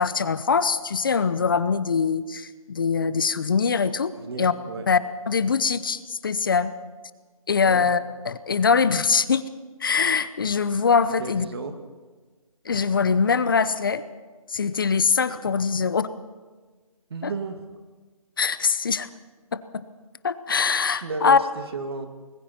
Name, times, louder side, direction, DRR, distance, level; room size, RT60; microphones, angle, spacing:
voice 1, 0.0-4.1 4.4-4.5 4.9-5.0 5.3-6.7 7.5-8.0 8.3-9.4 9.8-11.5 12.6-14.0 14.5-16.1 17.2-17.3 18.4-19.1 19.5-19.8 20.2-21.4, left 5 dB, 35° left, 14 dB, 0.7 m, -22 dB
voice 2, 4.2-4.9 7.6-7.9 11.2-11.7 17.1-17.6 21.0-22.1, right 4 dB, 45° right, 6 dB, 2.1 m, -33 dB
29.5 x 20.5 x 4.4 m, 1.4 s
hypercardioid pair, 165°, 19 cm